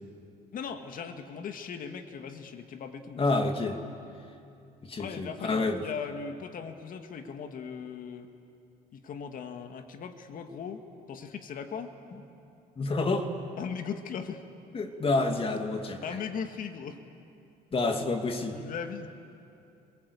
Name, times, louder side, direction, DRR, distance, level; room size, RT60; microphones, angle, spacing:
voice 1, 0.5-3.3 5.0-8.3 8.9-12.0 13.6-14.5 16.0-17.0 18.5-19.1, left 6 dB, 55° left, 6 dB, 2.0 m, -38 dB
voice 2, 3.2-3.8 4.8-5.8 12.8-13.3 14.7-16.2 17.7-18.6, left 3 dB, 35° left, 5 dB, 2.7 m, -28 dB
29.5 x 22.5 x 8.5 m, 2.6 s
cardioid pair, 110°, 17 cm